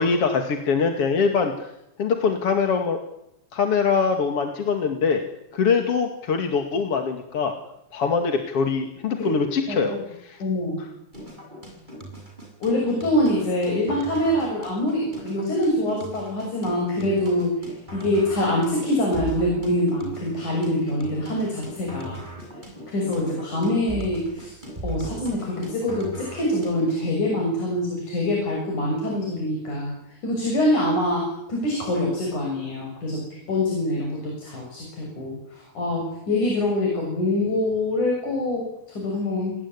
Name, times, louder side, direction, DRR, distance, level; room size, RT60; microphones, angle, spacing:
voice 1, 0.0-1.7 2.0-3.0 3.5-5.2 5.5-7.5 7.9-10.0 10.2-10.4, left 5 dB, 50° left, 5 dB, 3.0 m, -23 dB
voice 2, 10.4-10.8 12.6-22.2 22.9-24.5 24.8-33.2 33.5-38.7 39.0-39.6, left 1 dB, 85° left, 0 dB, 8.5 m, -25 dB
sound 1, 11.1-27.1, right 2 dB, 15° right, 8.1 m, -39 dB
29.0 x 19.5 x 9.9 m, 0.84 s
omnidirectional pair, 3.4 m